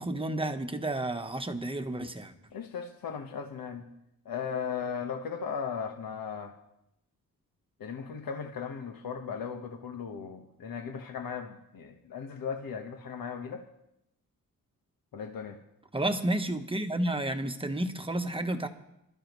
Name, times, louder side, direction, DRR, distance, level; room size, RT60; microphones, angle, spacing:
voice 1, 0.0-2.3 15.9-18.7, right 1 dB, 15° right, 7 dB, 1.1 m, -31 dB
voice 2, 2.5-3.8 4.2-6.5 7.8-13.6 15.1-15.6, left 6 dB, 75° left, 4 dB, 1.4 m, -37 dB
26.5 x 13.0 x 3.2 m, 0.83 s
wide cardioid pair, 120°, 35 cm